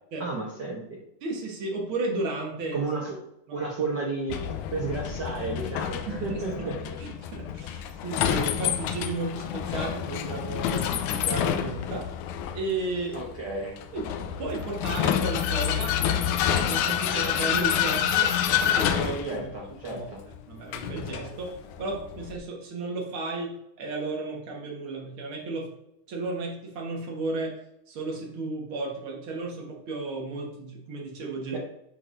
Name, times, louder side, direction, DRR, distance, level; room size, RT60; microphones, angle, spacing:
voice 1, 0.2-1.0 2.7-3.2 3.5-7.0 13.1-13.8 19.3-20.2 31.5-31.6, right 3 dB, 75° right, -3 dB, 0.9 m, -32 dB
voice 2, 1.2-2.9 3.5-3.7 6.1-6.4 7.0-12.1 12.5-13.2 13.9-14.0 14.4-16.0 16.2-18.3 18.6-19.5 19.9-20.1 20.5-21.5 21.8-25.7 26.1-27.6 27.9-31.6, right 3 dB, 50° right, -1 dB, 1.8 m, -33 dB
Vehicle, 4.3-22.4, left 9 dB, 80° left, 2.0 m, -28 dB
8.1 x 5.8 x 2.6 m, 0.82 s
omnidirectional pair, 3.5 m